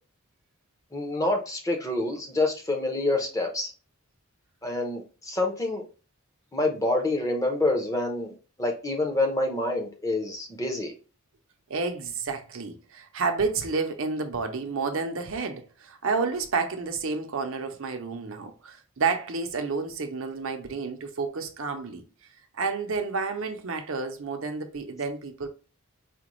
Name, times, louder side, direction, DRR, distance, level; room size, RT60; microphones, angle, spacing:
voice 1, 0.9-3.7 4.6-5.8 6.5-10.9, left 2 dB, 15° left, 0.7 m, -27 dB
voice 2, 11.7-22.0 22.5-25.5, right 4 dB, 60° right, 0.6 m, -30 dB
5.0 x 2.3 x 3.0 m
head